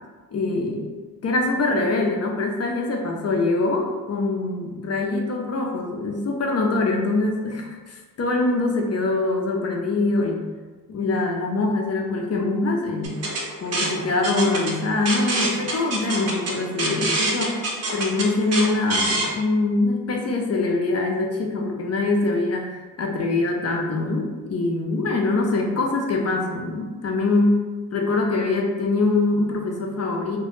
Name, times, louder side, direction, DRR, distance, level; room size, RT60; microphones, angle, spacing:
voice 1, 0.3-0.9 1.2-10.4 10.9-13.2 13.6-17.6 17.9-27.6 27.9-30.4, left 2 dB, 45° left, 1 dB, 0.5 m, -23 dB
sound 1, 13.0-19.3, right 2 dB, 45° right, 0.7 m, -26 dB
2.1 x 2.0 x 3.0 m, 1.3 s
supercardioid pair, 50°, 36 cm